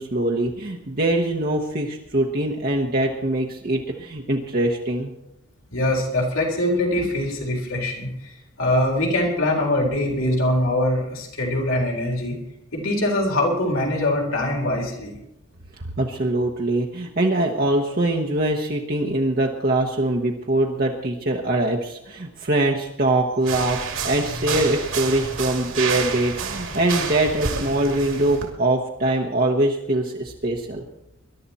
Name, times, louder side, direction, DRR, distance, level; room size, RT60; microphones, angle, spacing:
voice 1, 0.0-5.1 15.8-30.8, right 1 dB, 45° right, 0 dB, 1.1 m, -23 dB
voice 2, 5.7-12.4 12.7-15.2, left 1 dB, 75° left, -1 dB, 3.8 m, -23 dB
sound 1, 23.4-28.5, right 5 dB, 70° right, 2.6 m, -29 dB
21.0 x 11.5 x 4.2 m, 0.87 s
head